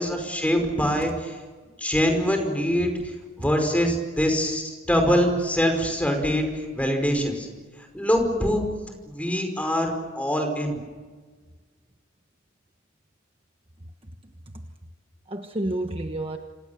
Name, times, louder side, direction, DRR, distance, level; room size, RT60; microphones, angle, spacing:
voice 1, 0.0-1.4 1.8-2.9 3.4-6.5 6.7-7.5 7.9-8.6 9.1-10.8, equal, 5° left, 4 dB, 5.2 m, -24 dB
voice 2, 14.0-14.7 15.3-16.4, right 1 dB, 25° right, 5 dB, 1.3 m, -31 dB
28.5 x 26.5 x 7.1 m, 1.4 s
head